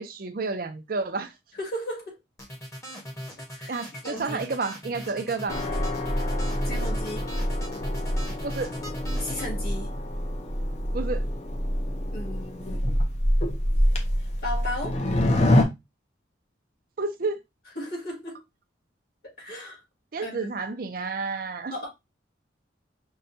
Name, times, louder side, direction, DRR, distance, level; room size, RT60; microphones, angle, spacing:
voice 1, 0.0-1.3 3.7-5.6 8.4-8.7 10.9-11.2 17.0-17.4 20.1-21.7, right 4 dB, 50° right, 0.5 m, -30 dB
voice 2, 1.5-2.2 3.5-3.8 4.0-4.4 6.6-7.3 9.2-9.9 12.1-13.0 14.4-15.0 17.8-18.4 19.4-19.8 20.2-20.8 21.7-21.9, left 1 dB, 55° left, 2.0 m, -35 dB
sound 1, 2.4-9.5, equal, 15° left, 1.0 m, -40 dB
sound 2, 5.5-15.6, left 1 dB, 35° left, 0.6 m, -26 dB
5.4 x 2.2 x 2.6 m
head